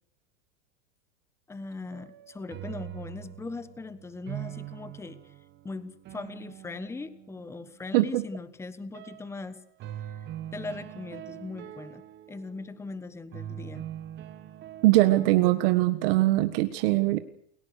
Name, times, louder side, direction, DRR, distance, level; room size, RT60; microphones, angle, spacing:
voice 1, 1.5-5.2 5.6-9.6 10.5-12.0 12.3-13.8, left 3 dB, 5° left, 14 dB, 1.2 m, -39 dB
sound 1, 1.9-7.9 8.9-9.3 9.8-12.8 13.3-15.7, right 12 dB, 30° right, 1.6 m, -43 dB
voice 2, 7.9-8.2 14.8-17.2, right 17 dB, 55° right, 10 dB, 1.6 m, -22 dB
29.0 x 17.0 x 6.6 m, 0.67 s
supercardioid pair, 150°, 35 cm